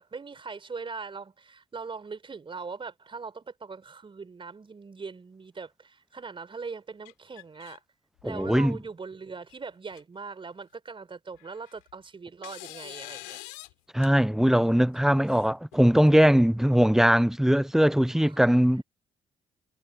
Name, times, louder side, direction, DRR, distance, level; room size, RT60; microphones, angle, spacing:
voice 1, 0.0-7.8 8.2-13.4 14.3-14.6 18.1-18.5, right 4 dB, 35° right, 4.4 m, -41 dB
sound 1, 7.1-7.8 8.2-8.7 9.5-9.6 9.9-10.0 11.3-11.9 12.4-13.7 14.0-14.1 15.3-16.1, left 32 dB, 85° left, 5.6 m, -45 dB
voice 2, 8.2-8.7 13.9-18.8, equal, 5° right, 0.7 m, -21 dB
hypercardioid pair, 50°, 15 cm